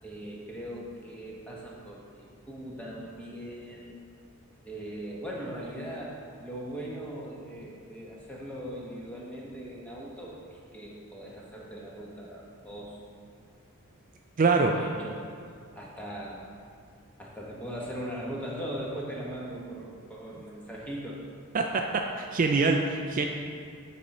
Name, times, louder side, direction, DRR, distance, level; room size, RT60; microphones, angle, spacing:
voice 1, 0.0-3.9 4.6-13.0 14.6-15.2 15.7-16.4 17.2-21.2, equal, 5° left, -4 dB, 1.2 m, -40 dB
voice 2, 14.4-14.7 21.5-21.6 22.2-23.3, right 4 dB, 40° right, 3 dB, 0.4 m, -24 dB
8.3 x 4.2 x 5.2 m, 2.2 s
head